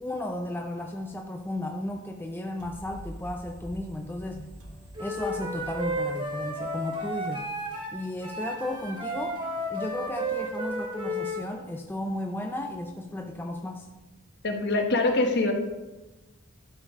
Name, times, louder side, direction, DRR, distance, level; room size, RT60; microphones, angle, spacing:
voice 1, 0.0-4.5 5.0-7.5 7.9-9.4 9.7-13.9, left 1 dB, 10° left, 3 dB, 0.4 m, -34 dB
sound 1, 2.6-8.2, right 1 dB, 75° right, 1.3 m, -47 dB
Wind instrument woodwind instrument, 5.0-7.9 8.2-11.4, equal, 25° right, 1.8 m, -32 dB
voice 2, 14.4-15.5, left 2 dB, 50° left, 4 dB, 1.0 m, -24 dB
12.0 x 5.3 x 3.6 m, 1.1 s
head